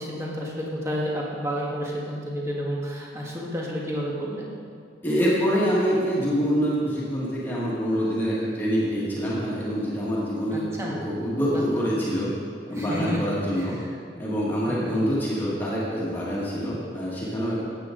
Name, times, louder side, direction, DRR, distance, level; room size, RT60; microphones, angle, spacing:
voice 1, 0.0-4.5 10.5-10.9 11.5-11.6 12.7-13.2 13.6-13.9 14.7-14.9, equal, 15° right, -4 dB, 1.7 m, -31 dB
voice 2, 5.0-12.3 12.7-13.8 14.1-17.6, equal, 10° left, -8 dB, 2.0 m, -25 dB
14.0 x 8.9 x 3.9 m, 2.2 s
head